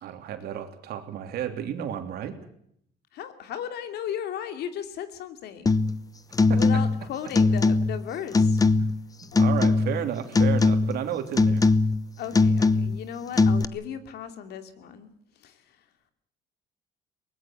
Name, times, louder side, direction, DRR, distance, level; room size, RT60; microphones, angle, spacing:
voice 1, 0.0-2.4 6.5-6.6 8.8-8.9 9.2-11.6, right 10 dB, 70° right, 6 dB, 3.2 m, -32 dB
voice 2, 3.1-5.8 6.5-8.6 9.3-9.4 12.2-15.1 15.4-15.8, left 9 dB, 75° left, 8 dB, 2.7 m, -36 dB
sound 1, 5.7-6.0 6.3-7.0 7.3-8.0 8.3-9.0 9.4-10.1 10.3-11.0 11.4-12.0 12.3-13.0 13.4-13.6, left 3 dB, 20° left, 0.9 m, -21 dB
23.0 x 19.5 x 7.7 m, 0.70 s
cardioid pair, 110°, 17 cm